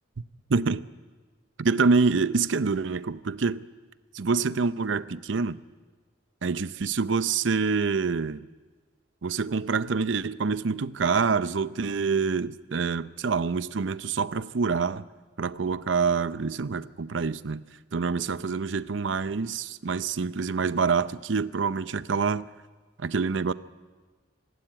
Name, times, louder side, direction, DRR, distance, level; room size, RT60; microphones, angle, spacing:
voice 1, 0.5-0.9 1.6-3.6 4.1-5.6 6.4-8.5 9.2-15.1 15.4-17.6 17.9-22.4 23.0-23.5, right 4 dB, 75° right, 0.6 m, -26 dB
25.5 x 12.5 x 8.9 m
head